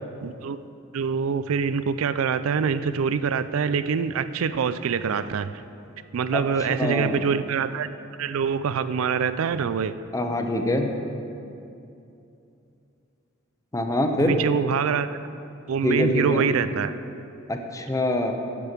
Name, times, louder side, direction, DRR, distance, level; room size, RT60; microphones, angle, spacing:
voice 1, 0.2-0.6 0.9-5.6 6.1-7.9 8.2-9.9 14.2-15.1 15.7-16.9, right 6 dB, 80° right, 13 dB, 0.4 m, -25 dB
voice 2, 6.3-7.2 10.1-10.9 13.7-14.4 15.8-16.5 17.5-18.3, left 1 dB, 15° left, 4 dB, 0.7 m, -25 dB
10.0 x 7.0 x 6.6 m, 2.7 s
head